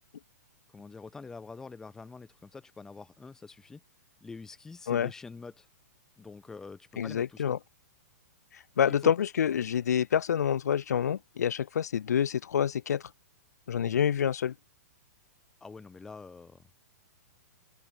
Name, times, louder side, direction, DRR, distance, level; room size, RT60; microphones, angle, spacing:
voice 1, 0.7-3.8 4.2-5.7 6.2-7.5 9.0-9.1 13.8-14.0 15.6-16.6, left 4 dB, 5° left, 6.1 m, -46 dB
voice 2, 7.0-7.6 8.5-13.1 13.7-14.5, left 8 dB, 75° left, 3.0 m, -27 dB
hypercardioid pair, 175°, 9 cm